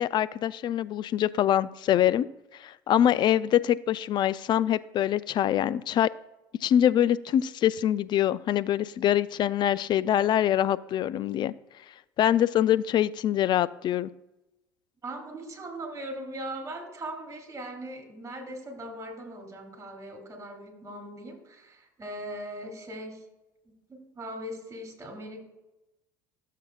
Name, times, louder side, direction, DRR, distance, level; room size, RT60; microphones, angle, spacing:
voice 1, 0.0-2.3 2.6-6.1 6.6-11.5 12.2-14.1, left 11 dB, 45° left, 18 dB, 0.3 m, -24 dB
voice 2, 15.0-23.2 23.6-25.4, right 1 dB, 30° right, 3 dB, 3.1 m, -40 dB
13.5 x 7.4 x 2.3 m, 0.97 s
hypercardioid pair, 70°, 11 cm